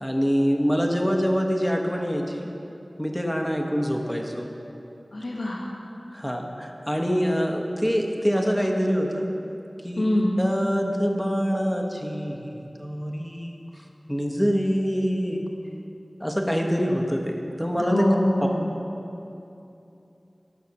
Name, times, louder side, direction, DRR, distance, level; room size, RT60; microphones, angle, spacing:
voice 1, 0.0-2.5 3.0-4.5 6.1-9.3 9.8-10.1 10.4-15.4 16.2-18.1, equal, 5° left, 1 dB, 1.2 m, -25 dB
voice 2, 5.1-5.6 10.0-10.3 17.8-18.7, left 1 dB, 70° left, -2 dB, 1.3 m, -24 dB
12.5 x 6.1 x 7.0 m, 2.8 s
wide cardioid pair, 60°, 0 cm